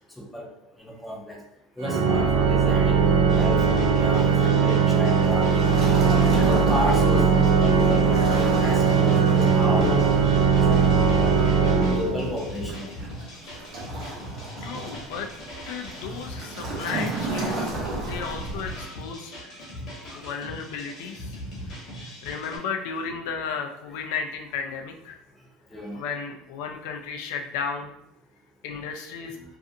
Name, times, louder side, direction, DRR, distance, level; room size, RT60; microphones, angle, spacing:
voice 1, 0.8-1.4 1.8-3.0 3.3-5.5 6.0-11.5 11.9-12.9 18.1-18.3 18.7-18.9 20.1-20.3 23.9-24.1 25.7-26.1, equal, 5° left, -2 dB, 0.4 m, -32 dB
Organ, 1.8-12.6, right 6 dB, 80° right, 0.4 m, -20 dB
sound 1, 3.3-22.6, equal, 40° left, 0.9 m, -40 dB
Waves surf, 5.2-18.8, right 2 dB, 40° right, 0.6 m, -34 dB
voice 2, 14.6-15.3 15.7-17.7 18.0-19.3 20.1-21.4 21.7-21.8 22.2-25.2 25.9-27.9 28.6-29.4, left 6 dB, 75° left, 4 dB, 0.3 m, -34 dB
2.6 x 2.4 x 2.5 m, 0.79 s
cardioid pair, 170°, 0 cm